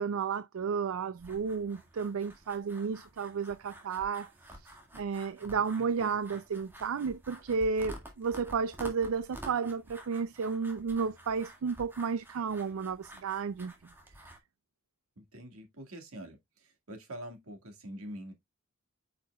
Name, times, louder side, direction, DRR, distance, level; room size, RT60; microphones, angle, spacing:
voice 1, 0.0-4.3 4.6-13.7, right 5 dB, 75° right, 0.4 m, -32 dB
sound 1, 1.2-14.4, right 1 dB, 10° right, 1.9 m, -50 dB
voice 2, 6.0-6.4 15.2-18.3, equal, 90° right, 2.0 m, -46 dB
8.4 x 5.9 x 2.3 m
head